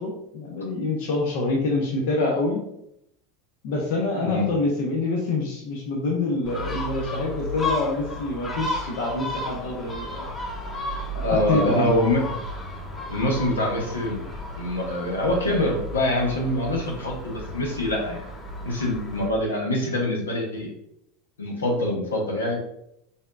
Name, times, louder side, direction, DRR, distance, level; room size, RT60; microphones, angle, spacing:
voice 1, 0.0-2.6 3.6-10.3 11.1-12.1, left 2 dB, 65° left, 0 dB, 0.8 m, -26 dB
voice 2, 4.2-4.5 11.2-12.2 13.1-14.2 14.6-18.2 18.6-20.7 21.4-22.6, left 1 dB, 90° left, -1 dB, 1.0 m, -25 dB
Gull seagull, 6.4-19.3, left 1 dB, 20° left, 1.2 m, -33 dB
4.2 x 3.5 x 2.4 m, 0.78 s
hypercardioid pair, 85°, 0 cm